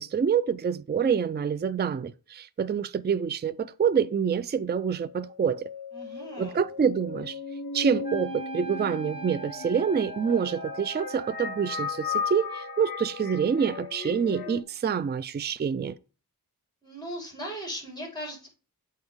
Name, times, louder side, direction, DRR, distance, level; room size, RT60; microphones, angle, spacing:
voice 1, 0.0-5.7 6.4-7.4 7.7-16.0, right 7 dB, 30° right, 0.3 m, -27 dB
sound 1, 5.0-14.6, left 6 dB, 80° left, 0.6 m, -36 dB
voice 2, 5.9-6.6 16.8-18.5, equal, 10° left, 4.1 m, -38 dB
Wind instrument woodwind instrument, 8.0-14.1, right 6 dB, 50° right, 2.9 m, -42 dB
7.8 x 4.4 x 3.6 m
wide cardioid pair, 60°, 37 cm